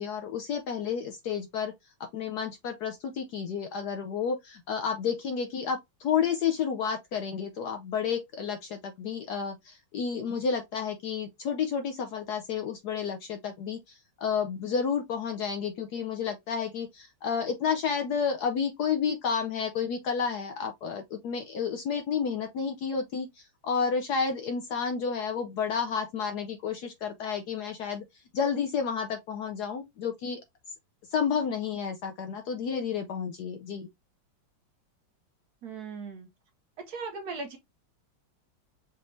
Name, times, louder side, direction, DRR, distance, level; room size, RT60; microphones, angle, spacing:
voice 1, 0.0-1.7 2.1-28.0 28.3-30.4 31.1-33.9, left 6 dB, 70° left, 1.0 m, -31 dB
voice 2, 35.6-36.3 36.9-37.6, right 4 dB, 65° right, 1.0 m, -38 dB
5.3 x 3.1 x 2.5 m
omnidirectional pair, 2.2 m